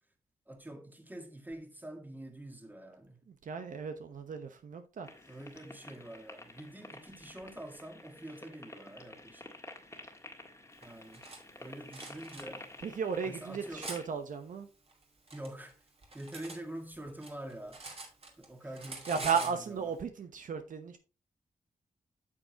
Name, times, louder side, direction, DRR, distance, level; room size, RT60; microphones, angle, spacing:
voice 1, 0.5-3.2 5.3-9.5 10.8-11.3 11.6-12.7 13.2-13.9 15.3-15.8 16.1-18.1 18.4-19.9, right 1 dB, 10° right, 1.7 m, -46 dB
voice 2, 3.3-5.1 12.8-14.7 19.1-21.0, right 6 dB, 70° right, 0.9 m, -35 dB
sound 1, 5.0-14.1, left 2 dB, 20° left, 1.7 m, -51 dB
Cutlery silverware, 10.8-11.4 11.9-12.4 13.1-14.0 14.9-16.6 16.9-18.5 18.7-19.6, right 2 dB, 45° right, 2.3 m, -45 dB
8.7 x 6.5 x 2.9 m
cardioid pair, 75°, 14 cm